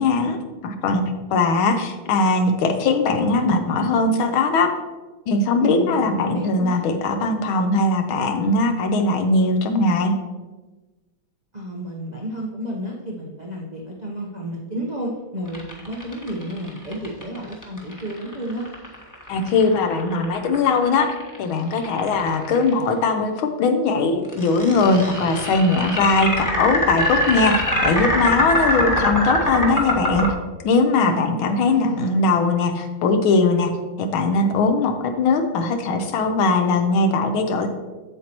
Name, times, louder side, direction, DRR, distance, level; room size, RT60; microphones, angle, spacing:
voice 1, 0.0-4.7 5.3-10.2 19.3-30.3 30.6-33.7 34.0-37.7, left 3 dB, 75° left, 6 dB, 1.6 m, -20 dB
voice 2, 5.6-6.8 11.5-18.7 31.1-32.1, right 1 dB, 60° right, -3 dB, 0.4 m, -31 dB
sound 1, 15.5-22.7 24.3-30.3, equal, 15° left, 0.8 m, -23 dB
8.2 x 7.6 x 2.9 m, 1.2 s
omnidirectional pair, 2.3 m